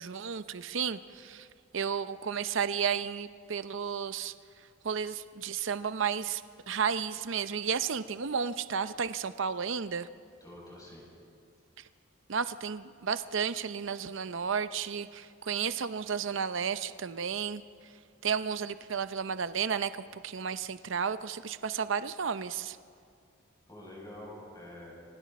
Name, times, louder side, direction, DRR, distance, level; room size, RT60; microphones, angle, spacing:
voice 1, 0.0-1.5 1.7-4.3 4.8-6.4 6.7-10.1 12.3-17.6 18.2-22.8, right 6 dB, 65° right, 12 dB, 0.6 m, -32 dB
voice 2, 10.4-11.0 23.7-24.9, left 1 dB, 20° left, -4 dB, 7.4 m, -47 dB
30.0 x 24.5 x 4.2 m, 2.2 s
head